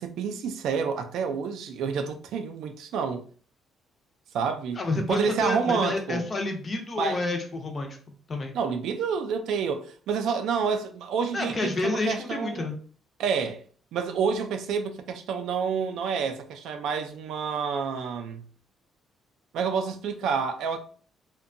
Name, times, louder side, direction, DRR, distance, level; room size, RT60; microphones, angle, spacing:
voice 1, 0.0-3.3 4.3-4.8 5.1-6.2 7.0-7.2 8.5-12.7 13.2-13.6 13.9-18.4 19.5-20.8, right 6 dB, 75° right, 0.3 m, -28 dB
voice 2, 4.8-8.0 8.3-8.5 11.3-12.8, left 2 dB, 25° left, 0.5 m, -29 dB
2.6 x 2.1 x 2.5 m
cardioid pair, 165°, 0 cm